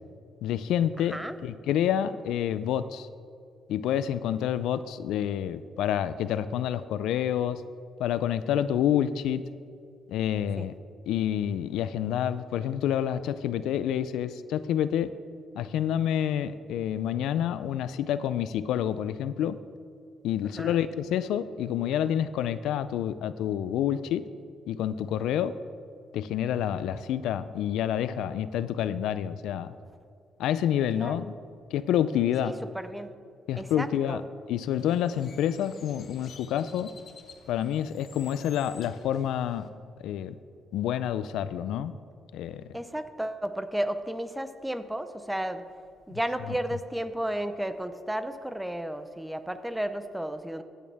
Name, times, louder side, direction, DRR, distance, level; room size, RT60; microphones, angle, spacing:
voice 1, 0.4-3.1 3.7-7.6 8.0-9.4 10.1-10.7 11.1-15.1 15.5-19.6 20.2-24.3 24.7-25.5 26.1-29.7 30.4-31.3 31.7-32.6 33.5-34.2 34.5-36.9 37.5-39.7 40.0-40.3 40.7-41.9 42.3-42.7, left 10 dB, 85° left, 14 dB, 0.4 m, -28 dB
voice 2, 1.0-1.4 10.6-10.7 20.6-20.8 30.9-31.2 32.4-33.1 33.6-34.2 42.7-45.6 46.1-50.6, right 1 dB, 5° right, 10 dB, 0.7 m, -33 dB
Bird, 34.7-39.7, left 6 dB, 60° left, 1.0 m, -52 dB
15.5 x 8.7 x 3.5 m, 2.4 s
cardioid pair, 90°, 0 cm